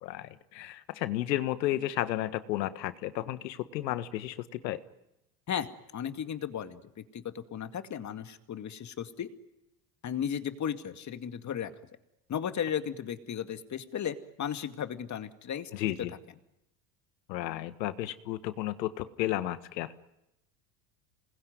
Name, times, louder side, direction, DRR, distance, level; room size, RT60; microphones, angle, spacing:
voice 1, 0.0-4.8 15.7-16.1 17.3-19.9, left 14 dB, 85° left, 12 dB, 1.7 m, -33 dB
voice 2, 5.5-9.3 10.0-11.7 12.3-15.7, left 8 dB, 35° left, 9 dB, 2.2 m, -35 dB
27.5 x 20.5 x 9.5 m, 0.90 s
supercardioid pair, 100°, 49 cm